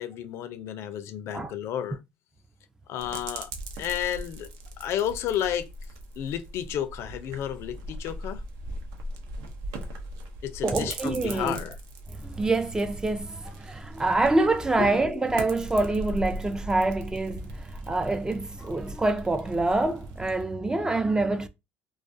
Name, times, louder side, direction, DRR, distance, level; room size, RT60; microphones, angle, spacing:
voice 1, 0.0-2.0 2.9-3.5 3.8-4.5 4.8-5.7 6.2-8.4 10.4-11.7 14.8-15.1, left 10 dB, 60° left, 0.4 m, -31 dB
sound 1, 3.0-20.4, right 1 dB, 75° right, 0.6 m, -40 dB
voice 2, 10.6-11.6 12.1-21.5, right 2 dB, 15° right, 0.3 m, -26 dB
2.3 x 2.3 x 2.5 m
supercardioid pair, 85°, 5 cm